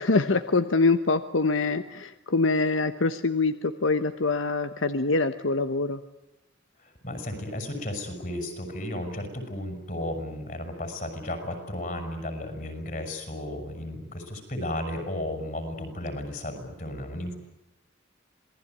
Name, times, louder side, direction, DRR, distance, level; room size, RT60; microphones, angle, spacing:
voice 1, 0.0-6.0, left 3 dB, 85° left, 11 dB, 1.1 m, -24 dB
voice 2, 6.8-17.4, left 1 dB, 45° left, 6 dB, 7.0 m, -34 dB
27.0 x 19.5 x 9.6 m, 0.98 s
head